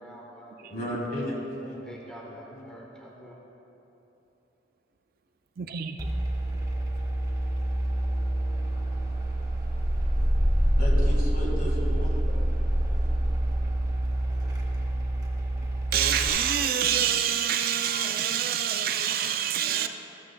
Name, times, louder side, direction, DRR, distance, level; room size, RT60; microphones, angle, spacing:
voice 1, 0.0-0.7 1.8-3.4, right 1 dB, 5° left, 0.8 m, -47 dB
voice 2, 0.7-2.0 2.2-2.7 3.1-3.3 10.8-12.5 12.9-13.0, equal, 45° left, 2.0 m, -35 dB
voice 3, 5.6-6.1 15.9-19.9, right 9 dB, 50° right, 0.4 m, -26 dB
sound 1, 6.0-16.3, right 1 dB, 20° right, 1.4 m, -26 dB
13.5 x 12.5 x 2.3 m
head